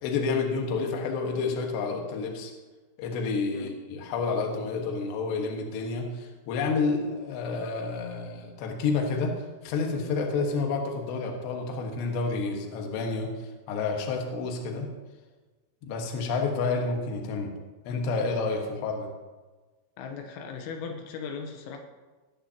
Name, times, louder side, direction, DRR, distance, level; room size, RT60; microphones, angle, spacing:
voice 1, 0.0-2.5 3.0-14.9 15.8-17.5 17.8-19.1, left 4 dB, 65° left, 1 dB, 3.3 m, -29 dB
voice 2, 20.0-21.8, left 5 dB, 85° left, 3 dB, 3.6 m, -38 dB
20.0 x 10.0 x 2.9 m, 1.3 s
omnidirectional pair, 5.9 m